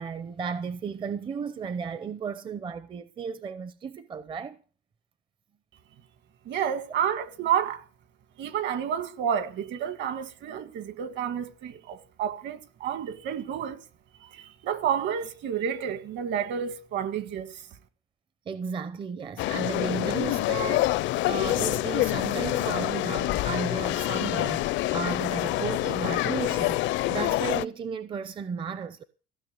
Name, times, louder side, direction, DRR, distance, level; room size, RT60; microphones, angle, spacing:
voice 1, 0.0-4.6 18.5-29.0, right 6 dB, 25° right, 0.6 m, -34 dB
voice 2, 6.5-7.8 8.4-13.8 14.3-17.6, right 8 dB, 55° right, 1.8 m, -30 dB
sound 1, 19.4-27.7, left 17 dB, 65° left, 0.5 m, -27 dB
15.5 x 6.6 x 8.0 m
cardioid pair, 145°, 21 cm